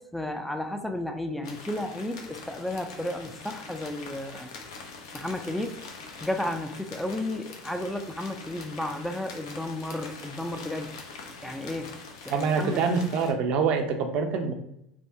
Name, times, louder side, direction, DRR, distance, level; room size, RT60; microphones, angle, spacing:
voice 1, 0.0-4.5 5.1-5.8 6.2-10.9 11.4-12.0 12.2-12.8, left 1 dB, 5° left, 5 dB, 0.3 m, -33 dB
sound 1, 1.4-13.3, left 4 dB, 75° left, 0.5 m, -44 dB
voice 2, 12.3-14.5, right 5 dB, 55° right, 5 dB, 0.5 m, -25 dB
3.4 x 2.0 x 2.6 m, 0.79 s
hypercardioid pair, 80°, 2 cm